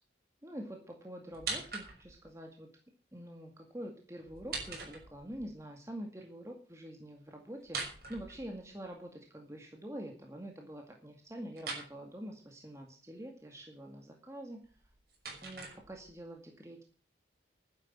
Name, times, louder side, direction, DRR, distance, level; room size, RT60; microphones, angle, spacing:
voice 1, 0.4-2.7 3.1-14.6 15.4-16.8, right 1 dB, 15° right, 2 dB, 2.1 m, -46 dB
sound 1, 1.3-2.3 4.3-5.5 7.6-8.9 11.6-11.9 14.6-16.2, right 4 dB, 55° right, 6.1 m, -42 dB
12.0 x 9.8 x 7.4 m, 0.39 s
head